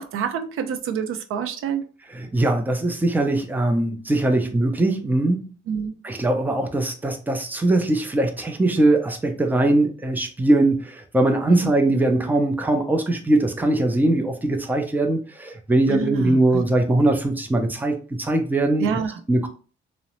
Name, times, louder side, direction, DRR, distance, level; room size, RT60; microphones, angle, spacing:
voice 1, 0.0-1.8 5.7-6.0 11.5-11.7 15.9-16.6 18.8-19.1, right 7 dB, 85° right, 0.5 m, -27 dB
voice 2, 2.1-5.5 6.0-19.0 19.3-19.5, right 2 dB, 10° right, 0.5 m, -21 dB
2.7 x 2.0 x 2.9 m
cardioid pair, 110°, 21 cm